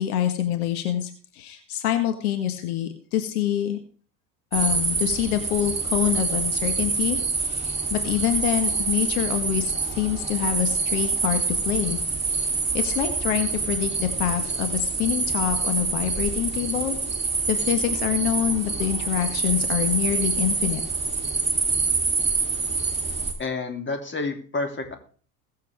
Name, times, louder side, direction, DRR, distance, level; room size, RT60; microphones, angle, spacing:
voice 1, 0.0-3.8 4.5-12.0 12.3-12.5 12.7-17.0 17.5-20.8, left 11 dB, 75° left, 7 dB, 1.7 m, -26 dB
sound 1, 4.5-23.3, right 4 dB, 15° right, 2.9 m, -26 dB
voice 2, 23.4-25.0, left 3 dB, 25° left, 5 dB, 3.0 m, -29 dB
21.0 x 7.6 x 3.5 m, 0.43 s
hypercardioid pair, 80°, 45 cm